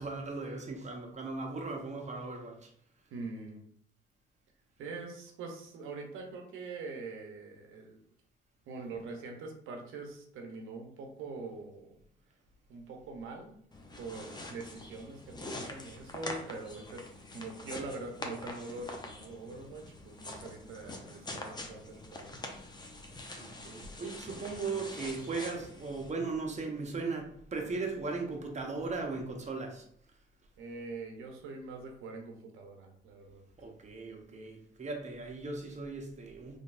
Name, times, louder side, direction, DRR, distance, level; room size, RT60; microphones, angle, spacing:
voice 1, 0.0-2.7 23.4-29.8 33.6-36.6, right 3 dB, 35° right, 1 dB, 1.0 m, -37 dB
voice 2, 3.1-3.6 4.8-8.0 8.7-11.9 12.7-13.6 13.9-17.0 17.3-22.4 30.6-33.4, right 3 dB, 85° right, 2 dB, 0.9 m, -43 dB
sound 1, 13.7-26.1, left 2 dB, 20° left, 0.7 m, -45 dB
3.8 x 3.4 x 2.5 m, 0.66 s
cardioid pair, 90°, 20 cm